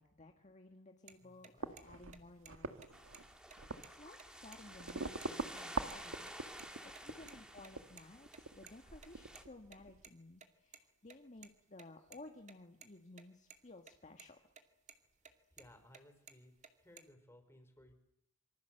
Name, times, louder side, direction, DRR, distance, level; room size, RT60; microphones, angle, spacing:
voice 1, 0.0-2.7 3.1-3.4 3.9-6.3 6.6-14.4, left 2 dB, 35° left, 4 dB, 1.6 m, -56 dB
sound 1, 1.1-1.2 1.4-1.5 1.8-1.9 2.1-2.5 2.8-2.9 3.1-3.2 3.5-4.6 4.9-5.0 5.2-5.3 5.6-6.0 6.3-6.7 6.9-8.0 8.3-10.8 11.1-12.9 13.2-13.3 13.5-13.9 14.2-14.6 14.9-16.0 16.3-17.0, right 6 dB, 35° right, 2.5 m, -57 dB
voice 2, 1.2-1.7 7.1-7.3 15.5-16.5 16.8-17.9, left 1 dB, 10° left, 6 dB, 5.2 m, -62 dB
sound 2, 1.6-10.1, right 3 dB, 80° right, 1.8 m, -46 dB
sound 3, 2.9-9.4, equal, 5° right, 2.6 m, -52 dB
27.0 x 25.0 x 7.8 m, 0.78 s
head